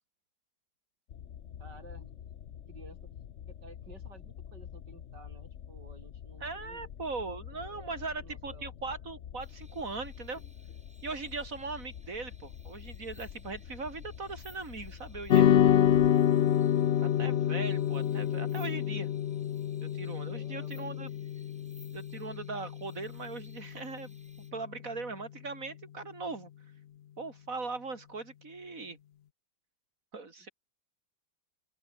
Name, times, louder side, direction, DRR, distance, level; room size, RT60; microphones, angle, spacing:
sound 1, 1.1-16.1, left 9 dB, 50° left, 1.0 m, -47 dB
voice 1, 1.6-3.1 3.5-6.9 7.5-8.7 16.1-16.5 20.3-21.1 30.4-30.5, right 3 dB, 80° right, 5.2 m, -55 dB
voice 2, 6.4-10.4 11.0-15.6 17.0-19.1 19.8-21.1 21.9-26.5 27.2-29.0 30.1-30.5, right 3 dB, 50° right, 3.8 m, -40 dB
sound 2, 9.4-24.5, equal, 5° right, 5.2 m, -62 dB
sound 3, 15.3-23.8, left 10 dB, 70° left, 0.6 m, -27 dB
open air
omnidirectional pair, 1.8 m